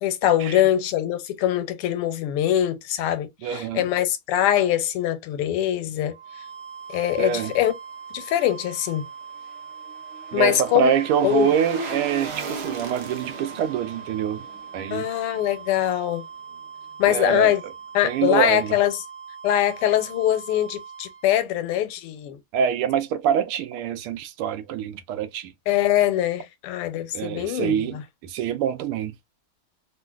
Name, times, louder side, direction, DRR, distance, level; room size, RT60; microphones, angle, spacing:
voice 1, 0.0-6.1 6.9-7.7 8.1-9.0 10.3-10.9 11.2-11.5 14.9-16.2 17.0-17.6 17.9-19.0 19.4-22.4 25.7-28.0, left 12 dB, 85° left, 1.6 m, -23 dB
voice 2, 3.4-3.9 7.2-7.5 10.3-14.4 14.7-15.0 17.0-17.5 18.0-18.8 22.5-25.5 27.1-29.1, right 8 dB, 85° right, 1.5 m, -25 dB
sound 1, 6.1-21.4, right 6 dB, 40° right, 1.1 m, -41 dB
sound 2, 9.0-16.2 16.5-16.6, right 4 dB, 60° right, 1.3 m, -38 dB
3.7 x 2.4 x 2.2 m
omnidirectional pair, 2.4 m